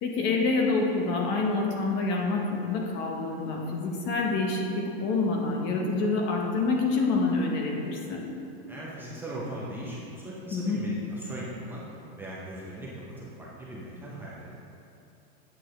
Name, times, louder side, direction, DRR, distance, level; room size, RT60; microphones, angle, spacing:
voice 1, 0.0-8.2 10.5-10.8, left 3 dB, 35° left, 0 dB, 0.9 m, -27 dB
voice 2, 8.7-11.8 12.2-14.6, right 1 dB, 5° right, -7 dB, 0.6 m, -39 dB
8.6 x 6.0 x 3.2 m, 2.6 s
supercardioid pair, 155°, 32 cm